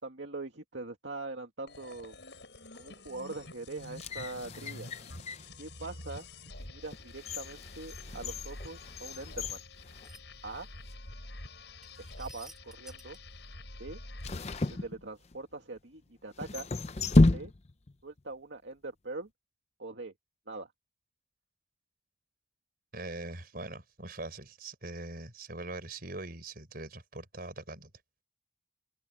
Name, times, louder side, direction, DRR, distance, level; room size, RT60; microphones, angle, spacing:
voice 1, 0.0-2.2 2.7-4.9 5.6-9.6 10.4-10.7 12.2-13.2 13.8-14.0 14.7-16.7 17.2-17.5 18.0-19.3 19.8-20.1 20.5-20.7, right 3 dB, 75° right, 2.2 m, -42 dB
sound 1, 1.7-14.9, left 2 dB, 65° left, 7.8 m, -47 dB
sound 2, 3.8-5.6 6.2-6.3 6.9-10.6 10.9-11.0 11.8-12.2 14.2-15.5 16.4-17.9 18.2-18.3, left 2 dB, 35° left, 0.6 m, -31 dB
sound 3, 10.0-10.2 11.8-13.2, right 1 dB, ahead, 5.3 m, -52 dB
voice 2, 22.9-27.9, right 2 dB, 50° right, 4.8 m, -42 dB
open air
head